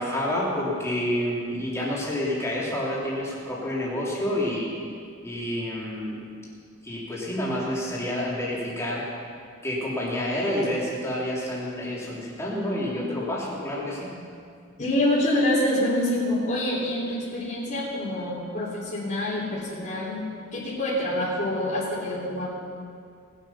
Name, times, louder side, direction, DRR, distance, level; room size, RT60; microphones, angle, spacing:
voice 1, 0.0-4.7 5.2-6.2 6.8-9.1 9.6-14.1, left 1 dB, 15° left, -6 dB, 3.2 m, -28 dB
voice 2, 14.8-20.2 20.5-22.5, left 1 dB, 40° left, -11 dB, 3.1 m, -26 dB
19.5 x 8.3 x 5.8 m, 2.3 s
head